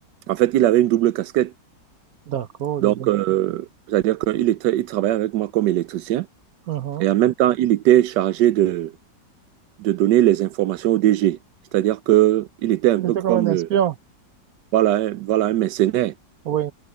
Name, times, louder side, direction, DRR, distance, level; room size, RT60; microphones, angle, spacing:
voice 1, 0.3-1.5 2.8-6.3 7.0-8.9 9.8-11.4 11.7-13.7 14.7-16.1, right 13 dB, 75° right, 1.2 m, -20 dB
voice 2, 2.3-3.1 6.7-7.1 13.0-13.9 16.4-16.7, right 10 dB, 55° right, 1.3 m, -24 dB
omnidirectional pair, 2.0 m